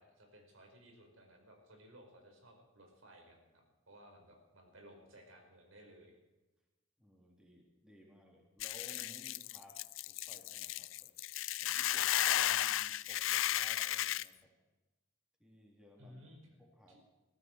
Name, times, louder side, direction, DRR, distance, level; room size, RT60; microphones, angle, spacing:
voice 1, 0.0-6.2 16.0-16.4 16.9-17.0, equal, 80° right, 2 dB, 4.9 m, -58 dB
voice 2, 7.0-9.8 10.1-11.1 11.6-14.5 15.4-16.4 16.8-16.9, equal, 5° right, -1 dB, 3.5 m, -59 dB
Hiss / Boiling, 8.6-14.2, left 13 dB, 75° left, 0.4 m, -34 dB
22.0 x 14.5 x 4.6 m, 1.1 s
head